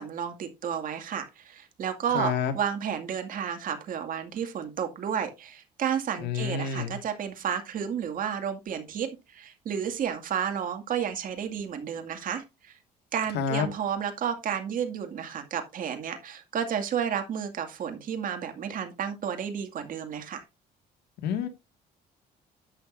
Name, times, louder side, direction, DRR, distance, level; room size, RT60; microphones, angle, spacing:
voice 1, 0.0-12.7 13.1-20.4, right 8 dB, 55° right, 2.2 m, -32 dB
voice 2, 2.1-2.5 6.2-7.0 13.3-13.7 21.2-21.5, left 6 dB, 75° left, 2.0 m, -28 dB
11.5 x 8.0 x 2.6 m
cardioid pair, 110°, 17 cm